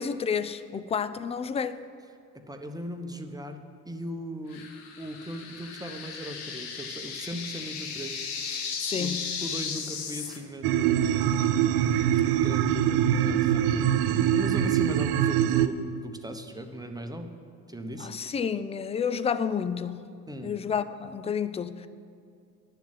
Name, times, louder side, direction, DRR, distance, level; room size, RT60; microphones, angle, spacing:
voice 1, 0.0-1.8 8.8-9.3 18.0-20.1 20.4-21.9, left 6 dB, 15° left, 0.3 m, -30 dB
voice 2, 2.4-4.7 5.0-8.6 9.0-9.1 9.4-11.1 12.3-17.3 17.7-18.1 20.3-20.6, equal, 10° right, 1.0 m, -38 dB
sound 1, 4.5-10.4, left 6 dB, 70° left, 1.2 m, -36 dB
sound 2, 10.6-15.7, right 10 dB, 55° right, 0.7 m, -23 dB
11.0 x 7.2 x 7.8 m
figure-of-eight pair, 50°, 45 cm